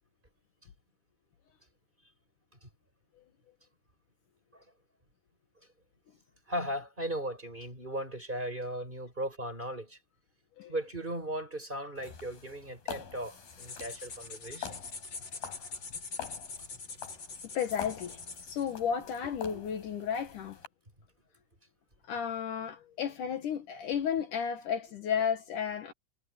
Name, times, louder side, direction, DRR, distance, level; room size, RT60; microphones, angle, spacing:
voice 1, 6.5-10.0 10.7-14.7, right 1 dB, 15° right, 6.1 m, -37 dB
sound 1, 12.0-20.7, left 10 dB, 85° left, 6.9 m, -46 dB
sound 2, 13.5-18.7, left 4 dB, 35° left, 3.6 m, -44 dB
voice 2, 17.5-20.6 22.1-25.9, left 7 dB, 65° left, 2.9 m, -33 dB
omnidirectional pair, 4.0 m